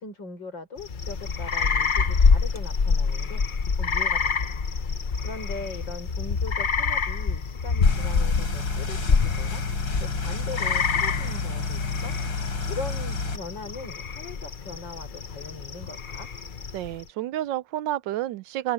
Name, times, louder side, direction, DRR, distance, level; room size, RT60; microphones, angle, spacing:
voice 1, 0.0-3.4 3.7-4.6 5.2-12.1 12.7-16.3, left 3 dB, 70° left, 6.1 m, -40 dB
sound 1, 0.8-17.0, left 5 dB, 40° left, 0.7 m, -26 dB
sound 2, 7.8-13.4, left 3 dB, 85° left, 4.4 m, -30 dB
voice 2, 16.7-18.7, right 13 dB, 75° right, 1.2 m, -30 dB
open air
omnidirectional pair, 2.1 m